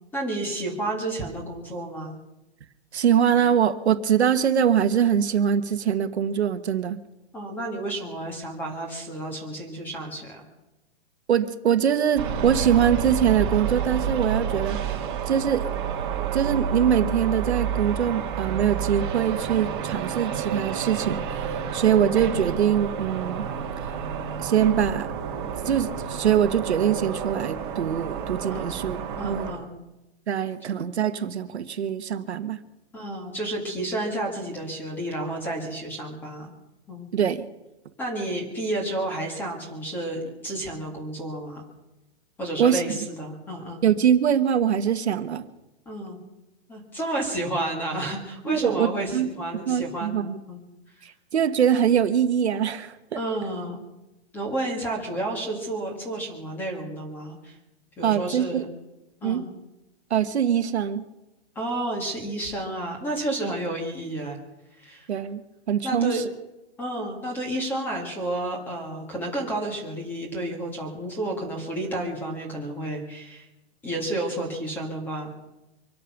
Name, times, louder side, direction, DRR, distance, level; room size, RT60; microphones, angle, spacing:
voice 1, 0.1-2.2 7.3-10.4 28.5-28.8 29.2-29.7 32.9-36.5 36.9-37.1 38.0-41.6 42.4-43.8 45.9-46.2 46.7-50.6 51.0-51.1 53.2-53.8 54.3-57.6 58.0-58.7 59.2-59.5 61.6-64.4 64.8-65.1 65.8-66.2 66.8-73.5 73.8-75.3, right 1 dB, 5° left, 2 dB, 1.8 m, -31 dB
voice 2, 2.9-7.0 11.3-14.8 15.3-15.7 16.3-23.4 24.4-25.1 25.6-29.0 29.2-29.5 30.3-32.6 37.1-37.5 42.6-43.0 43.8-45.5 48.5-49.3 49.7-50.4 51.0-53.2 58.0-58.6 59.2-59.4 60.1-61.0 65.1-65.4 65.7-66.2, right 9 dB, 75° right, 9 dB, 1.3 m, -23 dB
sound 1, 12.2-29.5, right 7 dB, 25° right, 1.7 m, -29 dB
25.0 x 8.7 x 6.0 m, 0.98 s
hypercardioid pair, 180°, 33 cm